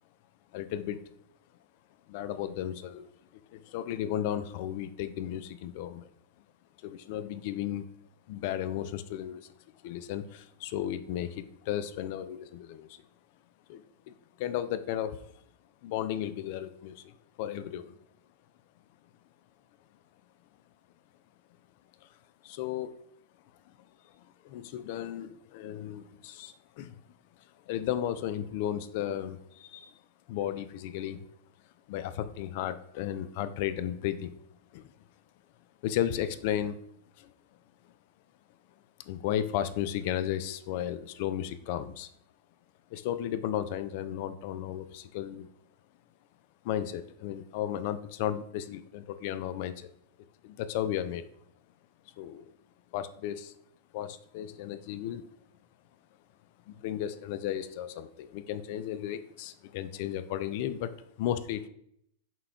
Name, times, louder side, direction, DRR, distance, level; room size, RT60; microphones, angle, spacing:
voice 1, 0.5-1.0 2.1-3.1 3.5-6.1 6.8-7.8 8.3-9.5 9.8-13.0 13.7-15.3 15.8-18.0 22.0-22.1 22.4-23.0 24.0-27.0 27.7-30.0 30.3-31.3 31.9-34.3 34.7-34.8 35.8-36.8 37.2-37.3 39.0-42.1 42.9-45.5 46.6-49.9 50.4-51.2 52.2-52.5 52.9-53.5 53.9-55.3 56.7-60.9 61.2-61.7, left 11 dB, 60° left, 12 dB, 0.3 m, -34 dB
5.6 x 2.2 x 3.5 m, 0.72 s
hypercardioid pair, 125°, 0 cm